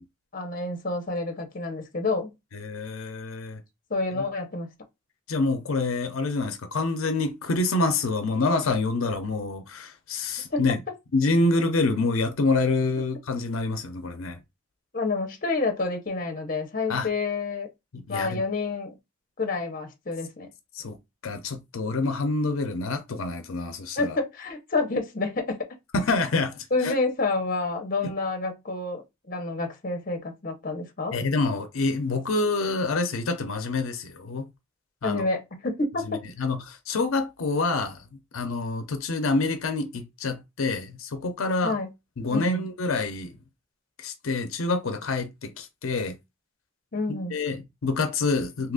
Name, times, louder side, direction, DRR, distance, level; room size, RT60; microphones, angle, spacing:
voice 1, 0.3-2.3 3.9-4.7 10.5-10.6 14.9-17.7 18.1-19.0 19.4-20.5 24.0-25.7 26.7-29.0 29.3-31.2 35.0-36.2 41.6-41.9 42.3-42.6 46.9-47.3, left 3 dB, 40° left, 0.7 m, -28 dB
voice 2, 2.5-3.6 4.1-4.3 5.3-10.8 11.1-14.4 16.9-17.1 17.9-18.4 20.7-21.0 21.2-24.2 25.9-26.9 31.1-34.5 35.0-35.2 36.1-38.0 38.3-41.8 42.2-43.3 44.0-46.2 47.1-48.7, left 3 dB, 85° left, 0.5 m, -27 dB
2.8 x 2.4 x 3.6 m
head